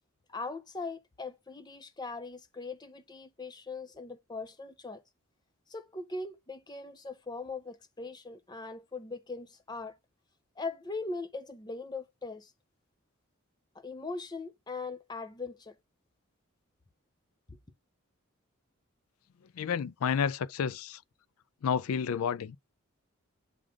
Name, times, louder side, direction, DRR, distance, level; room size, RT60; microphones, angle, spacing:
voice 1, 0.3-5.0 5.7-9.9 10.6-12.5 13.7-15.7 17.5-17.6, left 3 dB, 20° left, 0.5 m, -40 dB
voice 2, 19.6-21.0 21.6-22.6, left 7 dB, 85° left, 0.4 m, -30 dB
7.7 x 3.7 x 4.8 m
head